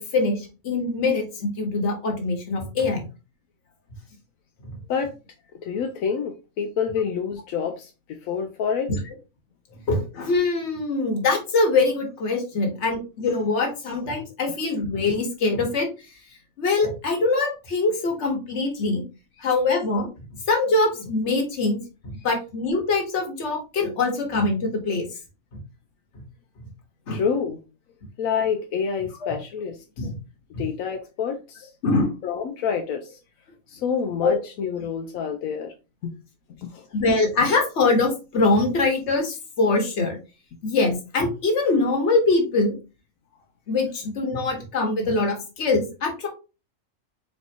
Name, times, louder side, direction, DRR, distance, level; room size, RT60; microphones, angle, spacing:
voice 1, 0.0-3.0 4.6-4.8 8.9-9.0 9.9-15.9 16.6-19.0 19.4-20.1 20.5-25.0 25.5-25.6 27.1-27.2 29.2-29.4 30.0-30.2 30.5-30.6 31.8-32.1 34.2-34.4 36.9-40.2 40.6-42.7 43.7-46.3, left 3 dB, 60° left, 2 dB, 1.4 m, -23 dB
voice 2, 5.6-7.9 8.2-8.9 27.1-27.6 28.2-30.1 30.6-31.7 32.2-33.2 33.7-35.7 36.0-36.1 36.6-36.8, left 6 dB, 85° left, 4 dB, 1.0 m, -27 dB
4.2 x 3.4 x 2.8 m, 0.31 s
omnidirectional pair, 1.4 m